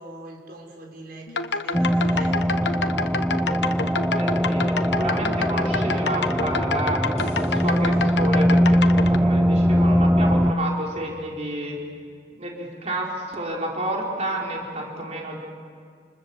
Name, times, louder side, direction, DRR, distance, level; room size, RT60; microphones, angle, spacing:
voice 1, 0.0-2.8 14.4-14.7, right 1 dB, 60° right, 0 dB, 6.1 m, -43 dB
sound 1, 1.3-9.2, left 4 dB, 70° left, 1.1 m, -28 dB
sound 2, 1.7-10.5, equal, 5° right, 0.7 m, -21 dB
voice 2, 4.1-7.0 7.3-11.8 12.4-15.4, right 1 dB, 40° right, -2 dB, 4.5 m, -30 dB
sound 3, 7.2-10.5 13.3-13.4, left 1 dB, 35° left, 2.9 m, -44 dB
28.5 x 28.5 x 7.2 m, 2.1 s
head